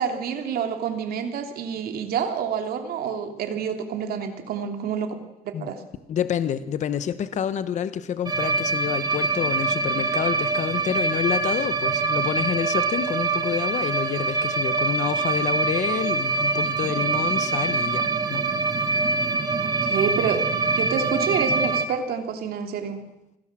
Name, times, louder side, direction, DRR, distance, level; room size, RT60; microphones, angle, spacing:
voice 1, 0.0-5.2 5.4-5.8 19.6-23.0, right 7 dB, 85° right, 6 dB, 3.2 m, -28 dB
voice 2, 6.1-18.5, left 9 dB, 50° left, 12 dB, 1.1 m, -28 dB
sound 1, 8.3-21.9, right 3 dB, 25° right, 1.5 m, -24 dB
27.5 x 18.0 x 7.6 m, 0.93 s
cardioid pair, 175°, 15 cm